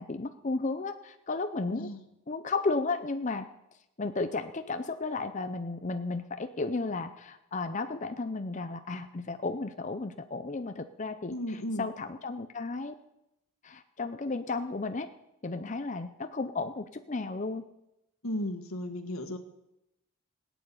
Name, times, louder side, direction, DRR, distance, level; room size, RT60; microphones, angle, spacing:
voice 1, 0.0-1.9 2.3-3.5 4.0-13.0 13.6-15.1 15.4-17.6, left 3 dB, 35° left, 9 dB, 0.6 m, -33 dB
voice 2, 1.7-2.0 11.3-11.9 18.2-19.4, left 1 dB, 85° left, 8 dB, 1.7 m, -35 dB
17.0 x 9.1 x 8.6 m, 0.90 s
head